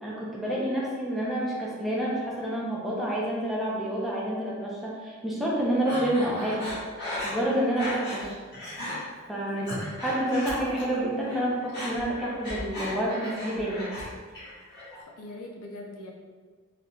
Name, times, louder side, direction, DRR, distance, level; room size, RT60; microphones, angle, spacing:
voice 1, 0.0-6.7 7.2-8.4 9.3-9.7 10.0-13.9, right 1 dB, ahead, -6 dB, 0.6 m, -28 dB
Breathing, 5.9-8.2 8.5-9.0 9.4-11.0 11.2-14.1 14.3-15.0, left 1 dB, 50° left, 1.4 m, -36 dB
voice 2, 9.6-9.9 15.0-16.1, left 2 dB, 85° left, 0 dB, 0.6 m, -41 dB
3.8 x 3.2 x 2.3 m, 1.5 s
head